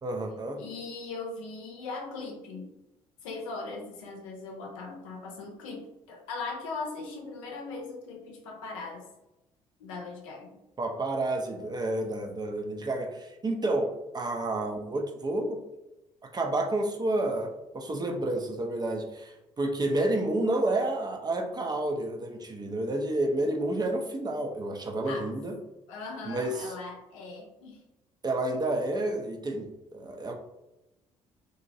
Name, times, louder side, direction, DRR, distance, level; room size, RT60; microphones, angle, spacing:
voice 1, 0.0-0.6 10.8-15.6 16.3-25.5 26.2-26.7 28.2-30.3, right 2 dB, 25° right, 4 dB, 0.5 m, -30 dB
voice 2, 0.6-2.7 3.2-9.1 9.8-10.6 25.0-25.3 25.9-27.8, left 3 dB, 75° left, 1 dB, 0.6 m, -39 dB
2.9 x 2.6 x 2.6 m, 0.95 s
figure-of-eight pair, 50°, 17 cm